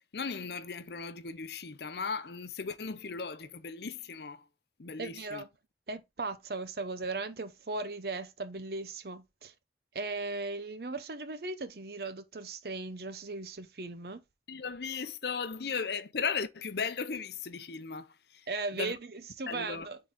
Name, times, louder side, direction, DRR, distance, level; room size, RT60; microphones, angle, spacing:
voice 1, 0.1-4.4 4.8-5.4 14.5-18.5 18.7-18.9 19.5-19.9, left 5 dB, 65° left, 0.7 m, -37 dB
voice 2, 5.0-5.5 5.9-9.5 9.9-14.2 18.5-20.0, right 3 dB, 60° right, 0.7 m, -37 dB
9.1 x 3.9 x 3.6 m
head